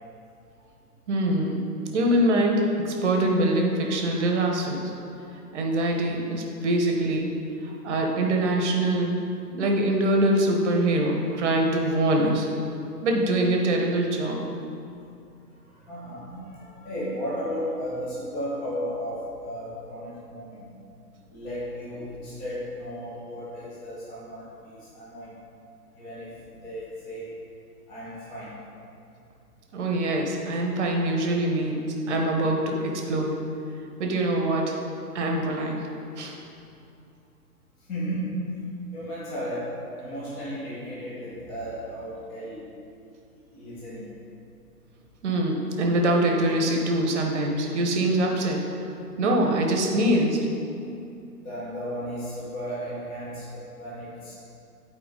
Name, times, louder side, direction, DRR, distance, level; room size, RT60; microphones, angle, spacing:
voice 1, 1.1-1.6 1.9-4.9 5.5-7.3 7.6-9.2 9.5-12.5 13.0-14.5 29.7-33.3 34.0-34.8 35.1-35.8 36.2-36.4 45.2-48.6 49.2-50.4, right 1 dB, 45° right, 1 dB, 1.2 m, -24 dB
voice 2, 15.7-20.7 21.3-25.3 25.9-27.3 27.9-28.6 37.8-38.4 38.9-42.7 43.5-44.2 51.4-54.4, equal, 20° left, -9 dB, 1.5 m, -35 dB
8.7 x 4.5 x 3.9 m, 2.6 s
figure-of-eight pair, 130°, 48 cm